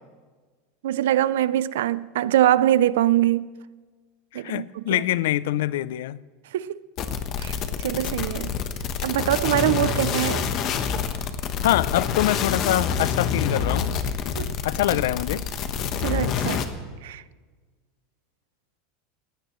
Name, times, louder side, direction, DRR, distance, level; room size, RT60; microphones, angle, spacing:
voice 1, 0.8-3.5 4.3-5.0 6.5-6.8 7.4-7.6 7.8-8.5 9.0-10.5 14.4-14.5 16.0-16.6 17.0-17.2, right 13 dB, 90° right, 0.4 m, -23 dB
voice 2, 4.3-6.2 11.6-13.9 14.6-15.4, left 14 dB, 80° left, 0.4 m, -24 dB
sound 1, 7.0-16.7, left 7 dB, 35° left, 1.0 m, -27 dB
19.5 x 16.0 x 3.1 m
supercardioid pair, 160°, 0 cm